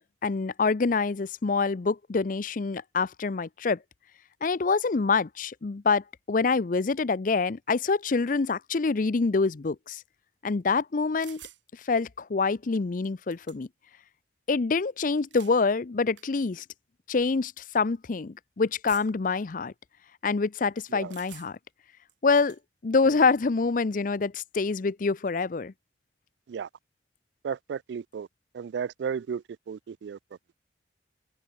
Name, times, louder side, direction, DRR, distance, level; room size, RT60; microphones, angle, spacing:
voice 1, 0.2-3.8 4.4-10.0 10.4-11.4 11.9-13.7 14.5-16.6 17.1-19.7 20.2-21.6 22.2-22.6 22.8-25.7, left 4 dB, 45° left, 0.5 m, -26 dB
sound 1, 11.2-11.6 12.7-12.8 13.0-13.9 15.1-15.6 16.2-16.3 17.1-17.3 18.9-19.3 21.1-21.7 22.1-22.6, right 12 dB, 90° right, 4.6 m, -49 dB
voice 2, 27.4-28.3 28.5-30.2, right 7 dB, 70° right, 0.3 m, -34 dB
head